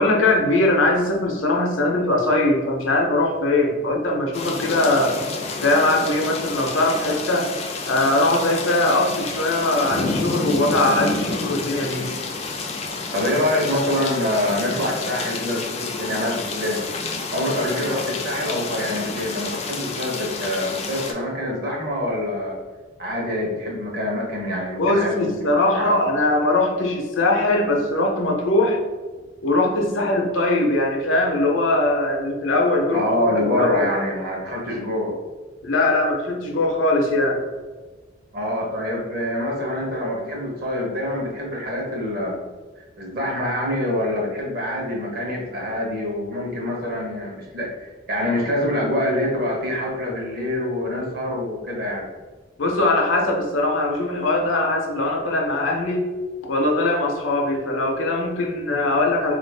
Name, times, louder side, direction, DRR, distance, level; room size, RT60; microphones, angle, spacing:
voice 1, 0.0-5.2 5.6-7.5 7.9-12.1 24.8-28.8 29.4-33.9 35.6-37.4 52.6-56.1 56.5-59.4, left 2 dB, 75° left, 0 dB, 0.7 m, -21 dB
sound 1, 4.3-21.1, left 3 dB, 30° left, 0.3 m, -29 dB
voice 2, 13.1-16.9 17.3-22.6 23.0-25.9 32.9-35.1 38.3-42.4 42.8-52.1, left 1 dB, 50° right, -1 dB, 0.8 m, -25 dB
3.2 x 2.5 x 3.3 m, 1.3 s
head